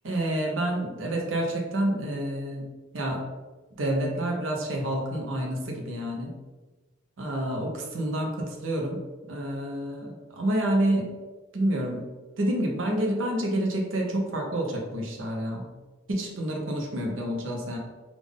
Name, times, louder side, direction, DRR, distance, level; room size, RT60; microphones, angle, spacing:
voice 1, 0.0-3.2 3.8-6.3 7.2-9.0 9.3-11.1 11.5-12.0 12.4-15.7 16.1-17.8, right 1 dB, 90° right, 1 dB, 0.7 m, -28 dB
3.6 x 2.4 x 3.5 m, 1.2 s
head